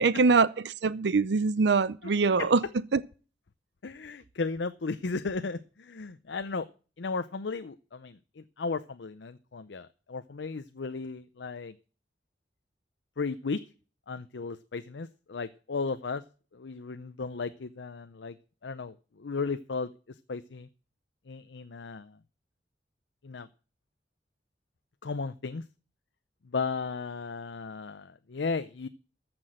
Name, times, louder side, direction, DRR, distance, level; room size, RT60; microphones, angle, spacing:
voice 1, 0.0-2.6 2.9-3.0, right 4 dB, 70° right, 0.6 m, -23 dB
voice 2, 3.8-6.7 7.0-11.7 13.2-13.6 14.1-16.2 16.5-18.4 18.6-19.9 20.3-20.7 21.3-22.2 23.2-23.5 25.0-25.6 26.5-28.9, left 4 dB, 85° left, 0.6 m, -35 dB
14.0 x 6.1 x 7.4 m
head